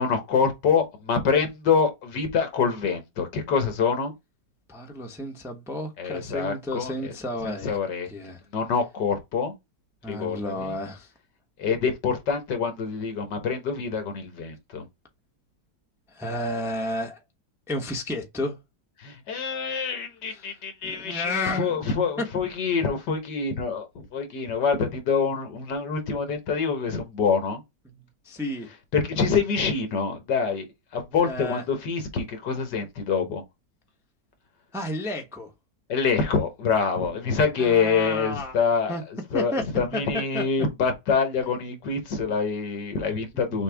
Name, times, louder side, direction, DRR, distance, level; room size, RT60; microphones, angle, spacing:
voice 1, 0.0-4.1 6.0-7.1 7.4-8.1 8.5-9.5 10.1-10.7 11.6-14.8 19.0-27.6 28.9-30.7 30.9-33.4 35.9-43.6, left 5 dB, 70° left, 1.8 m, -26 dB
voice 2, 4.7-7.8 8.1-8.4 10.0-11.1 16.1-17.2 17.7-18.6 20.3-20.6 20.8-21.8 22.2-22.3 27.9-28.7 31.2-31.6 34.7-35.5 37.6-38.6 38.9-39.0 39.3-39.6 39.9-40.0 40.3-40.4 41.4-41.5 42.2-42.3, left 1 dB, ahead, 0.8 m, -32 dB
6.6 x 2.4 x 3.4 m
omnidirectional pair, 2.0 m